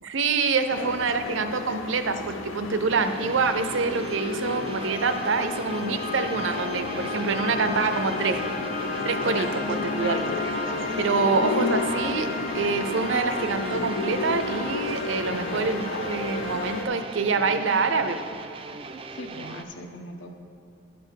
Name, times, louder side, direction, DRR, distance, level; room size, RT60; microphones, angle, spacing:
voice 1, 0.0-8.4 9.1-10.3 11.0-12.3 12.5-15.8 16.1-18.2, right 4 dB, 80° right, 9 dB, 0.5 m, -26 dB
sound 1, 0.7-16.8, left 4 dB, 90° left, 0.5 m, -33 dB
sound 2, 2.9-19.6, right 3 dB, 30° right, 0.3 m, -40 dB
sound 3, 4.0-16.9, left 2 dB, 40° left, 0.8 m, -34 dB
voice 2, 8.1-8.8 9.3-9.5 10.0-10.3 15.3-15.7 19.1-20.3, left 1 dB, 65° left, 4 dB, 0.8 m, -39 dB
11.5 x 4.3 x 6.4 m, 2.4 s
head